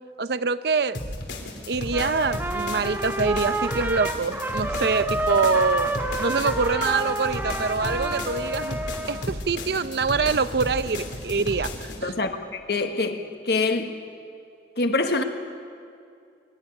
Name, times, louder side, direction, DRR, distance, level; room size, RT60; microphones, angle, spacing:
voice 1, 0.2-1.0 1.7-5.9 6.2-8.8 9.1-12.1, right 4 dB, 65° right, 0.6 m, -25 dB
sound 1, 0.9-12.0, left 1 dB, 80° left, 3.1 m, -34 dB
Trumpet, 1.9-9.3, right 2 dB, 10° right, 0.8 m, -29 dB
voice 2, 12.0-13.9 14.8-15.2, left 3 dB, 65° left, 1.4 m, -25 dB
22.5 x 13.5 x 9.8 m
head